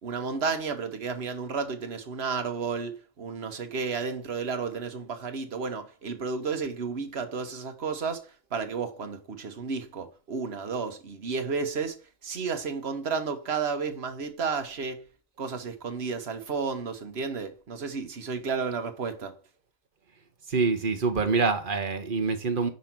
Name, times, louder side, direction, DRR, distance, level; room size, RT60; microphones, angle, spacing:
voice 1, 0.0-15.0 15.4-19.3, right 5 dB, 75° right, 1.4 m, -32 dB
voice 2, 20.5-22.7, right 4 dB, 55° right, 1.3 m, -25 dB
5.4 x 5.2 x 6.0 m
omnidirectional pair, 1.1 m